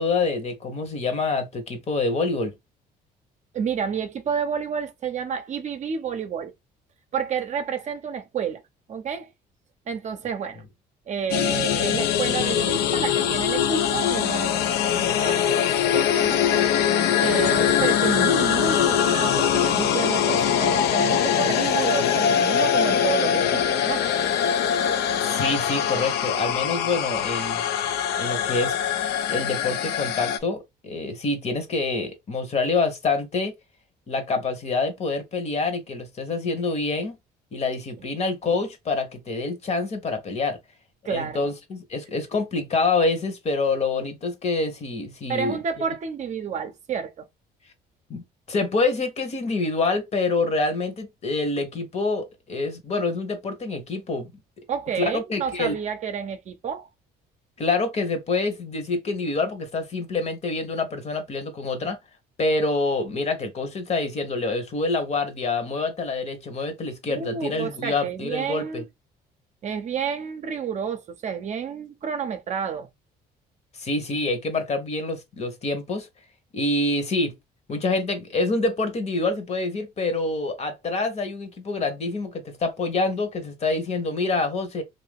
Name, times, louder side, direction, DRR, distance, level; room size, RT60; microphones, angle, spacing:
voice 1, 0.0-2.5 24.8-24.9 25.2-27.6 28.2-28.7 29.3-33.5 34.1-37.2 37.5-40.6 41.1-45.6 48.1-54.3 54.9-55.7 57.6-62.0 62.4-68.8 73.7-76.1 76.5-77.3 77.7-84.8, left 3 dB, 40° left, 1.0 m, -26 dB
voice 2, 3.5-6.5 7.1-8.6 8.9-9.3 9.9-10.6 11.1-15.6 15.9-16.4 17.2-24.1 38.0-38.1 41.0-41.5 45.3-47.3 54.7-56.9 67.1-68.9 69.6-72.9, right 7 dB, 45° right, 0.6 m, -30 dB
sound 1, 11.3-30.4, left 9 dB, 75° left, 0.5 m, -22 dB
2.7 x 2.6 x 3.5 m
cardioid pair, 110°, 17 cm